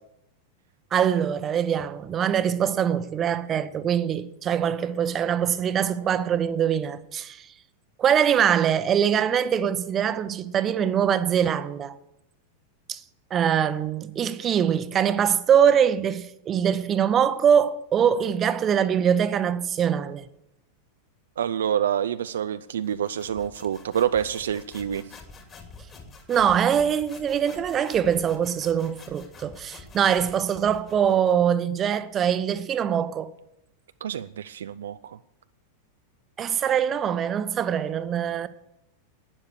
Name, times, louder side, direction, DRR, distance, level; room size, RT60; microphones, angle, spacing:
voice 1, 0.9-7.5 8.0-11.9 12.9-13.0 13.3-20.3 26.3-33.3 36.4-38.5, right 8 dB, 25° right, 0.8 m, -23 dB
voice 2, 21.4-25.0 34.0-35.2, right 9 dB, 65° right, 0.4 m, -27 dB
sound 1, 22.8-31.4, left 4 dB, 25° left, 2.6 m, -48 dB
11.5 x 9.7 x 6.6 m
figure-of-eight pair, 90°, 0 cm